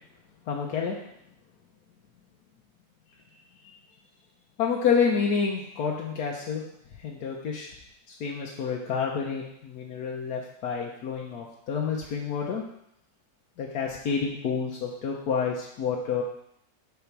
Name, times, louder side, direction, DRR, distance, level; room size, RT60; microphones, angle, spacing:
voice 1, 0.5-1.0 3.6-3.7 4.6-6.6 7.0-7.7 8.2-12.6 13.6-16.2, left 6 dB, 85° left, -1 dB, 1.4 m, -29 dB
7.1 x 4.4 x 6.0 m, 0.75 s
omnidirectional pair, 1.6 m